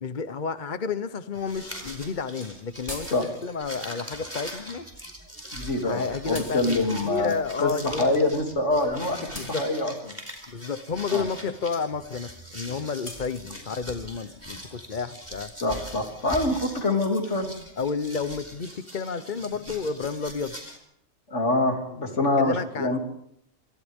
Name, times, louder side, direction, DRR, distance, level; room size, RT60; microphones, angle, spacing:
voice 1, 0.0-3.1 3.4-4.9 5.8-8.1 9.4-9.7 10.5-15.5 17.8-20.6 21.9-22.1 22.4-23.0, left 5 dB, 40° left, 10 dB, 0.9 m, -31 dB
sound 1, 1.3-20.8, equal, 10° right, 4.6 m, -42 dB
sound 2, 2.0-2.1 2.4-2.5 2.9-3.6 6.3-6.7 8.3-8.5 8.8-9.0 9.3-10.5 13.1-13.6, equal, 15° left, 6.0 m, -42 dB
voice 2, 5.5-7.3 7.6-9.2 9.6-9.9 11.1-11.2 15.6-17.5 21.3-23.0, left 2 dB, 65° left, 3 dB, 3.3 m, -25 dB
28.5 x 25.5 x 3.6 m, 0.71 s
omnidirectional pair, 1.3 m